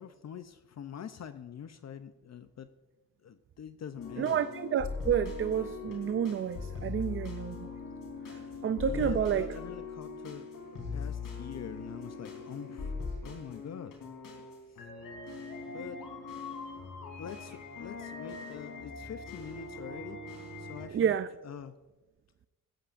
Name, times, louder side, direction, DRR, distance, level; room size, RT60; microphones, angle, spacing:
voice 1, 0.0-2.7 3.2-4.4 8.8-10.5 10.9-12.9 13.2-14.0 15.7-16.0 17.2-20.2 20.6-21.1 21.4-21.8, left 8 dB, 50° left, 10 dB, 0.7 m, -44 dB
sound 1, 3.9-20.9, left 4 dB, 65° left, 3.8 m, -41 dB
voice 2, 4.2-7.6 8.6-9.5 20.9-21.3, right 8 dB, 35° right, 12 dB, 0.5 m, -29 dB
16.5 x 14.0 x 2.6 m, 1.1 s
cardioid pair, 90°, 35 cm